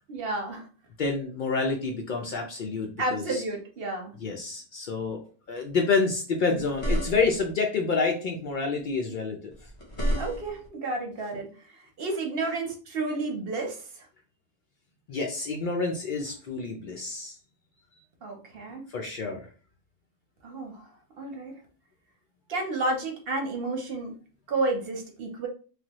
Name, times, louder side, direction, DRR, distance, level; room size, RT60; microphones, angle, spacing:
voice 1, 0.1-0.7 3.0-4.1 10.2-14.1 18.2-18.9 20.4-20.9 21.2-21.5 22.5-24.1 24.5-25.5, right 2 dB, 55° right, 2 dB, 0.8 m, -31 dB
voice 2, 1.0-3.4 4.2-5.2 5.5-9.5 15.1-17.3 18.9-19.5, left 4 dB, 90° left, 2 dB, 0.4 m, -28 dB
sound 1, 6.6-7.5 9.5-10.7, equal, 30° left, 0.8 m, -30 dB
3.2 x 2.1 x 2.9 m, 0.38 s
omnidirectional pair, 1.4 m